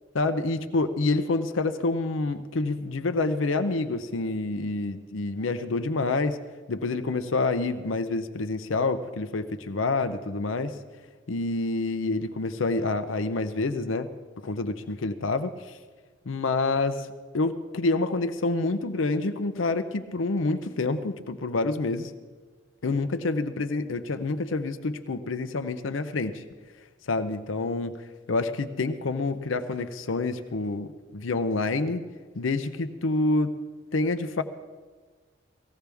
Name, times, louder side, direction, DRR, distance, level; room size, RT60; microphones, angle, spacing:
voice 1, 0.1-6.4 6.7-10.8 11.3-14.1 14.4-15.8 16.3-17.1 17.3-22.1 22.8-26.4 27.1-28.0 28.3-32.0 32.4-33.5 33.9-34.4, left 3 dB, 80° left, 9 dB, 0.7 m, -27 dB
18.5 x 16.0 x 3.5 m, 1.4 s
head